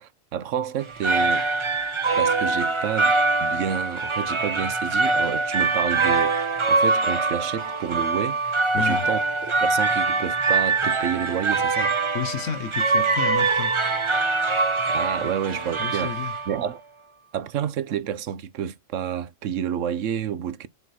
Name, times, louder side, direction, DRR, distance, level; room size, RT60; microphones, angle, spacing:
voice 1, 0.0-1.5 2.2-9.2 9.6-11.9 14.6-16.1 16.5-16.8 17.3-20.7, right 9 dB, 80° right, 1.1 m, -29 dB
sound 1, 0.8-16.7, right 3 dB, 30° right, 0.7 m, -23 dB
voice 2, 8.7-9.1 12.1-13.7 15.2-15.3 15.8-16.3, left 8 dB, 85° left, 1.4 m, -31 dB
7.0 x 4.0 x 4.1 m
omnidirectional pair, 1.3 m